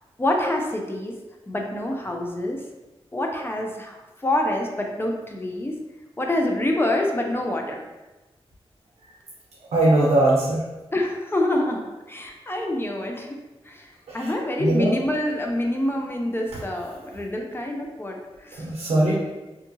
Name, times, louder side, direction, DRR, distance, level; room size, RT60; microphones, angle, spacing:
voice 1, 0.2-1.1 1.5-2.6 3.1-5.7 6.2-7.8 10.9-11.8 12.1-13.4 13.7-13.9 14.1-18.7 19.1-19.2, left 1 dB, 20° left, 1 dB, 0.5 m, -26 dB
voice 2, 9.7-10.6 14.1-14.3 14.6-14.9 18.6-19.2, right 1 dB, 90° right, -5 dB, 0.5 m, -20 dB
2.7 x 2.3 x 2.6 m, 1.1 s
cardioid pair, 50°, 10 cm